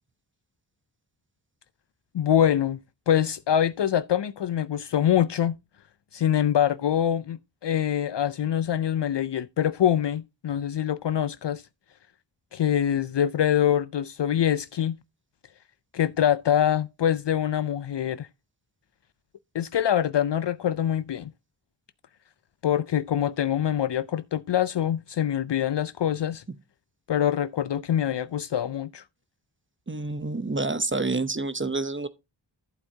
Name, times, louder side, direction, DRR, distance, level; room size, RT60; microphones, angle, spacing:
voice 1, 2.1-2.8 3.1-5.6 6.1-11.6 12.5-15.0 15.9-18.3 19.5-21.3 22.6-26.4 27.1-29.0, left 10 dB, 65° left, 0.5 m, -24 dB
voice 2, 29.9-32.1, right 3 dB, 25° right, 0.8 m, -28 dB
11.5 x 7.9 x 2.8 m
wide cardioid pair, 45°, 47 cm